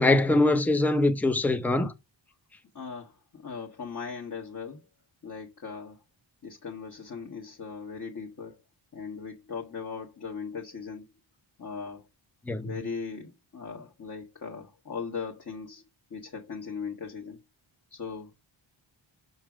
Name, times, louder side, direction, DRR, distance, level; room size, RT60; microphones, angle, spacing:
voice 1, 0.0-1.9 12.5-12.7, left 2 dB, 5° left, 0.7 m, -23 dB
voice 2, 2.7-4.8 5.2-6.0 6.4-8.6 8.9-11.1 11.6-12.0 12.6-15.8 16.1-17.4 17.9-18.3, left 5 dB, 40° left, 1.4 m, -39 dB
6.1 x 5.5 x 6.1 m
wide cardioid pair, 145°, 47 cm